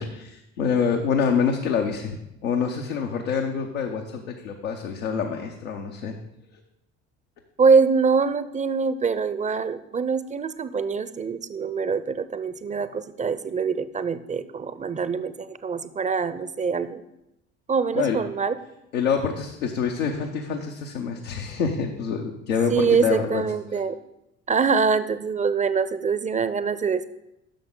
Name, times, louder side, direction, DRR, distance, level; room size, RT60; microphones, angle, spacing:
voice 1, 0.0-2.2 2.4-6.1 17.9-18.2 18.9-23.4 23.7-23.8, left 6 dB, 90° left, 1 dB, 0.8 m, -26 dB
voice 2, 7.6-17.0 17.7-18.6 22.7-24.0 24.5-27.1, right 5 dB, 20° right, 14 dB, 0.5 m, -24 dB
10.0 x 6.2 x 3.8 m, 0.86 s
hypercardioid pair, 60°, 39 cm